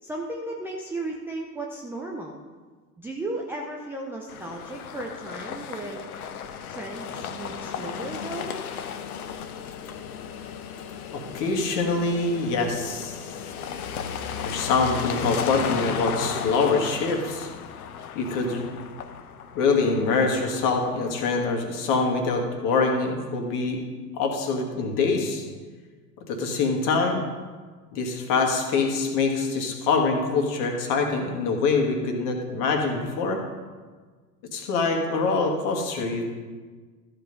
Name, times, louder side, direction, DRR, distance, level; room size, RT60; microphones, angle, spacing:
voice 1, 0.0-2.4 3.0-6.1 6.7-8.6, right 2 dB, 5° right, -1 dB, 0.5 m, -35 dB
sound 1, 4.3-21.3, left 7 dB, 60° left, 0.9 m, -35 dB
voice 2, 11.1-13.3 14.4-17.5 18.2-18.6 19.5-23.8 24.2-25.4 26.3-27.2 27.9-33.4 34.5-36.3, left 4 dB, 40° left, 2 dB, 2.1 m, -24 dB
13.5 x 5.4 x 5.4 m, 1.4 s
figure-of-eight pair, 90°, 49 cm